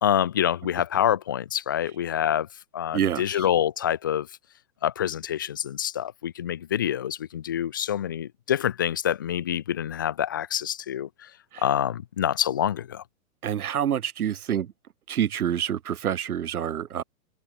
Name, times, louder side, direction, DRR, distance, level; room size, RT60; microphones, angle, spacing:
voice 1, 0.0-2.5 2.7-4.3 4.8-11.1 11.6-13.0, left 10 dB, 15° left, 0.5 m, -26 dB
voice 2, 2.9-3.5 11.5-11.6 13.4-14.7 15.1-17.0, right 9 dB, 90° right, 2.4 m, -27 dB
hypercardioid pair, 175°, 43 cm